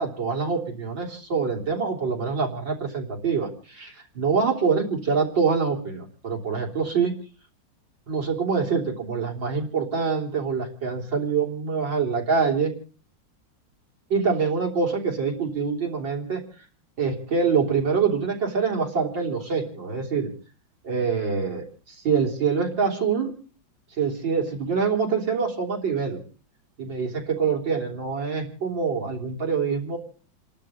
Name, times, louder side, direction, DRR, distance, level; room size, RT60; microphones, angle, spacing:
voice 1, 0.0-7.1 8.1-12.7 14.1-16.4 17.0-20.3 20.8-23.3 24.0-26.2 26.8-30.0, right 5 dB, 65° right, -1 dB, 4.0 m, -25 dB
30.0 x 12.0 x 3.7 m, 0.40 s
omnidirectional pair, 2.2 m